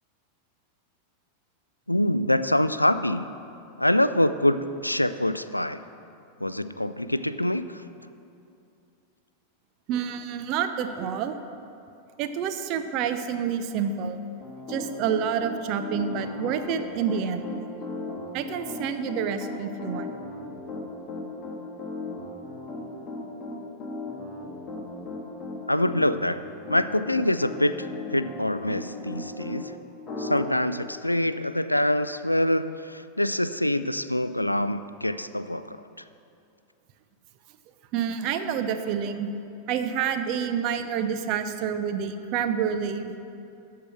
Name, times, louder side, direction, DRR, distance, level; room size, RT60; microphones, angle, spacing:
voice 1, 1.9-3.3 3.8-5.8 6.4-7.8 25.7-26.4 26.7-29.7 30.2-35.8, left 1 dB, 85° left, 13 dB, 0.3 m, -25 dB
voice 2, 9.9-11.3 12.2-14.2 14.7-17.6 18.3-20.1 37.9-39.3 39.7-43.2, right 8 dB, 40° right, 8 dB, 0.7 m, -28 dB
Piano, 14.4-29.6 30.1-30.4, left 2 dB, 25° left, 1.8 m, -36 dB
13.0 x 4.7 x 7.1 m, 2.7 s
figure-of-eight pair, 90°, 0 cm